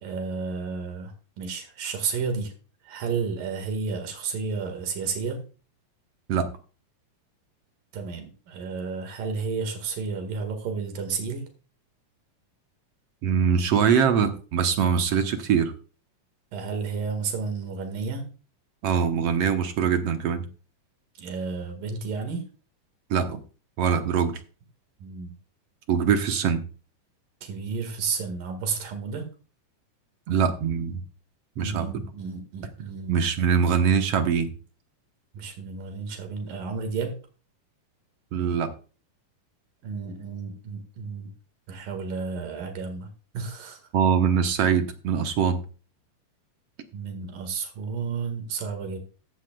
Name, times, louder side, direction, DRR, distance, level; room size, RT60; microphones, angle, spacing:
voice 1, 0.0-2.5 2.8-5.4 7.9-11.5 16.5-18.3 21.2-22.4 25.0-25.3 27.4-29.2 31.6-33.2 35.3-37.2 39.8-41.3 41.7-43.8 46.9-49.0, right 5 dB, 85° right, 5 dB, 3.5 m, -32 dB
voice 2, 13.2-15.7 18.8-20.4 23.1-23.4 23.8-24.3 25.9-26.6 30.3-31.0 31.6-32.1 33.1-34.5 38.3-38.7 43.9-45.6, right 7 dB, 65° right, 6 dB, 1.7 m, -23 dB
15.0 x 11.5 x 2.3 m, 0.36 s
omnidirectional pair, 3.8 m